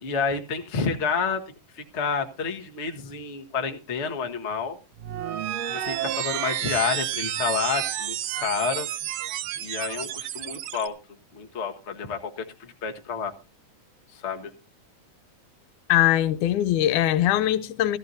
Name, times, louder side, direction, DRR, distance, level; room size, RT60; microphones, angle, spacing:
voice 1, 0.0-1.4 1.7-4.8 5.7-8.9 9.6-10.9 11.3-13.3 14.1-14.5, left 5 dB, 60° left, 0.6 m, -29 dB
sound 1, 5.0-10.9, right 12 dB, 70° right, 1.6 m, -30 dB
voice 2, 15.9-18.0, left 13 dB, 85° left, 2.2 m, -21 dB
16.0 x 14.0 x 2.7 m
omnidirectional pair, 3.5 m